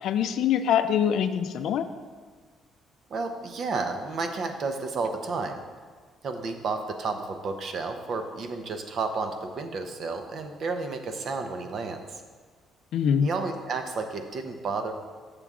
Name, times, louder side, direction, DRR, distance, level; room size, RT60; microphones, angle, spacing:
voice 1, 0.0-1.9 12.9-13.3, left 8 dB, 70° left, 10 dB, 0.4 m, -24 dB
voice 2, 3.1-5.6 6.2-12.2 13.2-14.9, right 4 dB, 55° right, 6 dB, 0.7 m, -31 dB
7.1 x 6.7 x 3.6 m, 1.5 s
cardioid pair, 115°, 0 cm